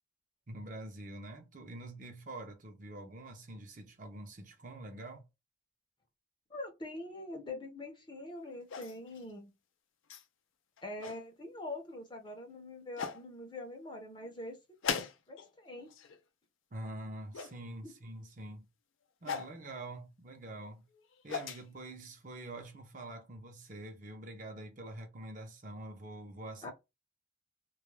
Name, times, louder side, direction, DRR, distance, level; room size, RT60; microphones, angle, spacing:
voice 1, 0.5-5.2 16.7-18.7 19.2-20.8 21.2-26.7, right 1 dB, 40° right, 0.6 m, -45 dB
voice 2, 6.5-9.5 10.8-14.6 14.9-15.9 17.8-17.9 26.6-26.7, left 2 dB, 25° left, 0.6 m, -44 dB
sound 1, 8.7-9.2 10.1-10.2 10.8-11.2 12.3-12.4 13.0-13.2 14.8-15.5 15.8-16.2 17.3-17.6 19.2-19.5 20.9-21.6, left 6 dB, 85° left, 0.4 m, -38 dB
2.3 x 2.1 x 3.1 m
head